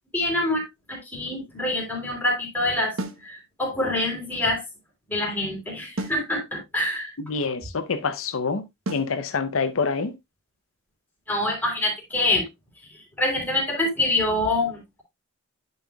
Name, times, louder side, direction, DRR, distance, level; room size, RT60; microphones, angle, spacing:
voice 1, 0.1-0.6 0.9-2.9 3.2-4.6 5.1-7.1 11.3-12.5 13.2-15.0, left 2 dB, 10° left, 3.3 m, -25 dB
sound 1, 3.0-3.3 6.0-6.3 8.9-9.2, right 1 dB, 85° right, 1.0 m, -31 dB
voice 2, 7.3-8.6 8.9-10.1, left 4 dB, 85° left, 0.7 m, -26 dB
10.5 x 5.6 x 2.3 m
head